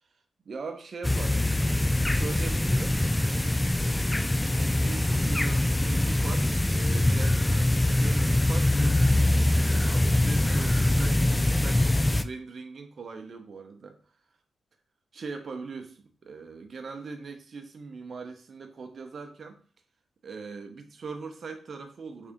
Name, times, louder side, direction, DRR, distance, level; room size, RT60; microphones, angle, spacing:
voice 1, 0.4-1.5 1.9-3.0 4.6-11.9 12.2-14.0 15.1-19.6 20.2-22.3, right 4 dB, 60° right, 6 dB, 0.7 m, -41 dB
sound 1, 1.0-12.2, left 1 dB, 15° left, 0.3 m, -23 dB
3.7 x 2.7 x 3.5 m, 0.41 s
supercardioid pair, 45°, 0 cm